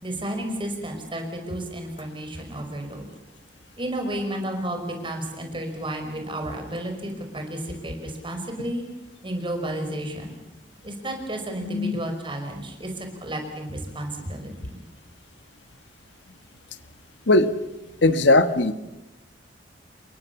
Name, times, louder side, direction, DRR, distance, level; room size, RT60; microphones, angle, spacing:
voice 1, 0.0-3.1 3.8-8.8 9.2-10.3 10.8-14.8, right 1 dB, 30° right, 4 dB, 5.4 m, -32 dB
voice 2, 11.6-12.0 17.3-17.5 18.0-18.7, left 2 dB, 90° left, 11 dB, 1.5 m, -18 dB
28.5 x 23.0 x 7.1 m, 0.98 s
head